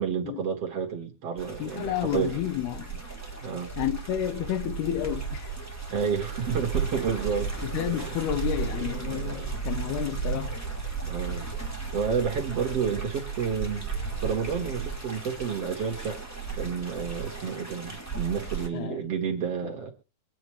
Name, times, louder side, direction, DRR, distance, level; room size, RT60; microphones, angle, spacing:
voice 1, 0.0-2.4 3.4-3.7 5.9-7.5 7.9-8.2 8.6-9.5 11.1-11.5 11.9-16.2 16.5-19.9, right 6 dB, 50° right, 2.3 m, -30 dB
sound 1, 1.4-18.7, right 5 dB, 5° left, 1.9 m, -34 dB
voice 2, 1.6-3.0 3.8-5.5 7.6-10.6 18.7-19.0, left 11 dB, 90° left, 3.0 m, -30 dB
24.5 x 9.3 x 3.2 m
omnidirectional pair, 4.5 m